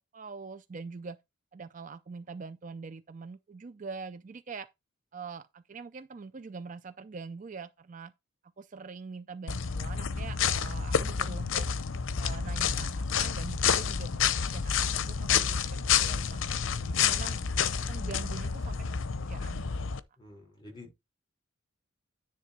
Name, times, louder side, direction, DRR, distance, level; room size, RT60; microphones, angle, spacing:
voice 1, 0.1-1.2 1.5-4.7 5.1-8.1 8.6-11.7 12.2-17.4 17.9-18.9 19.2-19.9, right 4 dB, 35° right, 0.4 m, -44 dB
sound 1, 9.5-20.0, left 7 dB, 65° left, 0.6 m, -29 dB
voice 2, 20.2-21.0, left 2 dB, 20° left, 5.1 m, -49 dB
10.0 x 3.4 x 5.8 m
head